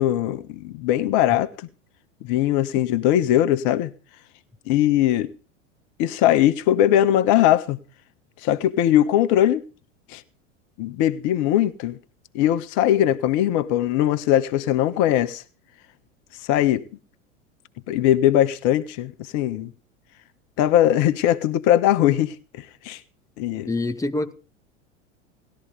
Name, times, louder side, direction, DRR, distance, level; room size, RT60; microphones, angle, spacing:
voice 1, 0.0-1.7 2.2-3.9 4.7-5.3 6.0-7.8 8.4-9.6 10.1-10.2 10.8-12.0 12.3-15.4 16.4-16.8 17.9-19.7 20.6-23.0 23.4-23.7, left 12 dB, 50° left, 1.4 m, -20 dB
voice 2, 23.7-24.3, left 2 dB, 10° left, 1.7 m, -25 dB
19.0 x 13.5 x 5.3 m
figure-of-eight pair, 85°, 37 cm